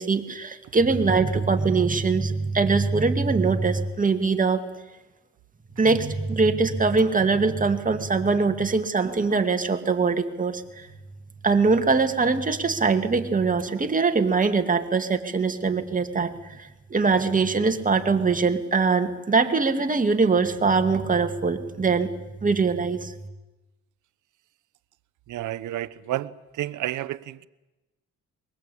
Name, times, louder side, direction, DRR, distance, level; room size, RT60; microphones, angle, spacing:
voice 1, 0.0-4.6 5.8-10.9 11.4-23.2, right 4 dB, 25° right, 6 dB, 2.3 m, -22 dB
voice 2, 25.3-27.5, right 14 dB, 80° right, 13 dB, 1.0 m, -31 dB
23.0 x 22.5 x 8.6 m, 1.0 s
cardioid pair, 90°, 30 cm